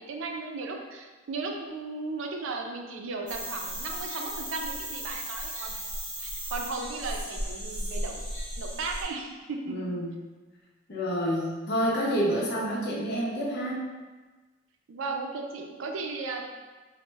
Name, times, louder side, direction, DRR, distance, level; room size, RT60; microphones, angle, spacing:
voice 1, 0.0-5.8 6.2-8.2 8.6-9.8 14.9-16.4, right 3 dB, 85° right, 2 dB, 0.4 m, -35 dB
sound 1, 3.3-9.0, equal, 25° right, 1.3 m, -36 dB
voice 2, 9.7-10.2 10.9-13.8, equal, 60° left, -4 dB, 0.7 m, -28 dB
3.1 x 2.1 x 3.3 m, 1.3 s
head